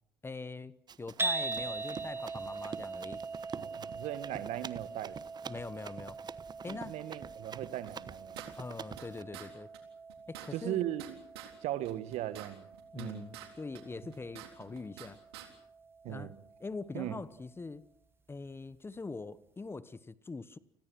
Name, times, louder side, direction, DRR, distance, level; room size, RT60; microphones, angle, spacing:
voice 1, 0.2-3.2 5.5-6.2 6.6-7.0 8.6-9.7 10.3-10.8 12.9-15.2 16.1-16.3 16.6-17.9 18.3-20.6, left 3 dB, 20° left, 1.1 m, -43 dB
Run, 0.9-9.2, right 7 dB, 35° right, 1.0 m, -47 dB
sound 1, 1.2-17.4, right 3 dB, 15° right, 1.7 m, -43 dB
voice 2, 3.5-5.2 6.6-8.4 10.5-11.2 11.6-12.7 13.0-13.3 16.0-16.4 16.9-17.2, right 13 dB, 60° right, 1.7 m, -38 dB
sound 2, 7.9-9.1 9.3-9.5 9.7-9.8 10.1-11.5 11.8-13.5 13.7-15.1 15.3-15.5, right 12 dB, 80° right, 3.7 m, -48 dB
30.0 x 21.0 x 6.2 m
hypercardioid pair, 70°, 13 cm